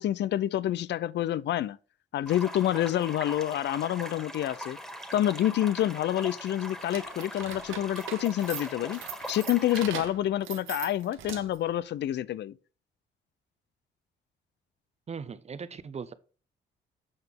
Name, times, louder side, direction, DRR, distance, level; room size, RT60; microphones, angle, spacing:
voice 1, 0.0-1.8 2.1-4.8 5.1-9.0 9.3-12.5, left 12 dB, 60° left, 0.4 m, -28 dB
sound 1, 2.2-9.9, equal, ahead, 1.8 m, -41 dB
sound 2, 6.8-11.7, right 10 dB, 80° right, 1.1 m, -41 dB
voice 2, 15.1-16.1, right 6 dB, 35° right, 0.7 m, -39 dB
7.9 x 5.8 x 3.5 m
cardioid pair, 90°, 20 cm